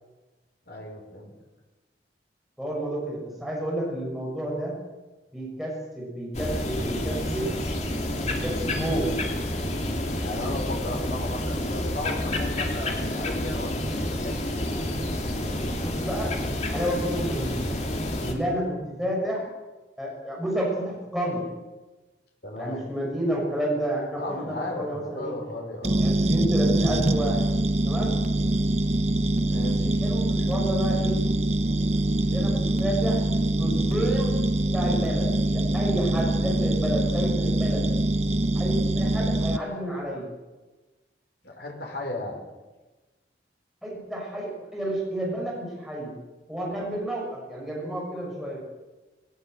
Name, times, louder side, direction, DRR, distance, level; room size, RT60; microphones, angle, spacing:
voice 1, 0.7-1.3 10.2-14.4 22.4-22.8 24.2-26.0 29.5-29.8 41.4-42.4, left 2 dB, 65° left, 0 dB, 5.5 m, -35 dB
voice 2, 2.6-4.8 5.3-7.5 8.3-9.1 15.8-17.5 18.2-19.5 20.0-21.5 22.5-25.3 26.0-27.4 27.8-28.2 29.6-31.2 32.2-33.2 33.6-34.4 34.7-37.9 38.5-40.3 43.8-46.1 46.5-48.6, right 1 dB, ahead, -4 dB, 6.4 m, -30 dB
sound 1, 6.3-18.3, left 1 dB, 40° left, 2.9 m, -29 dB
sound 2, 25.8-39.6, right 1 dB, 35° right, 0.9 m, -24 dB
19.5 x 19.5 x 7.9 m, 1.2 s
head